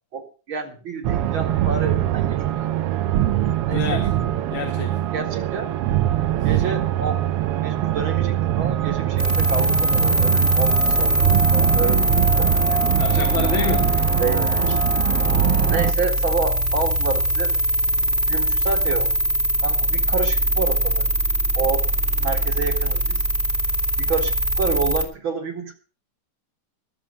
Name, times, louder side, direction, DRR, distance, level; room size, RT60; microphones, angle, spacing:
voice 1, 0.1-2.6 3.7-4.0 5.1-5.8 6.4-7.2 7.6-12.9 14.2-14.8 15.7-17.5 18.3-19.1 19.6-21.1 21.5-21.9 22.2-23.2 24.0-25.7, right 5 dB, 45° right, 4 dB, 2.5 m, -29 dB
sound 1, 1.0-15.9, right 12 dB, 70° right, 1.4 m, -22 dB
voice 2, 3.7-4.1 4.5-5.0 13.0-14.1, left 5 dB, 75° left, 1 dB, 3.4 m, -27 dB
sound 2, 9.2-25.1, equal, 20° right, 1.8 m, -22 dB
21.0 x 7.4 x 5.3 m, 0.36 s
omnidirectional pair, 3.3 m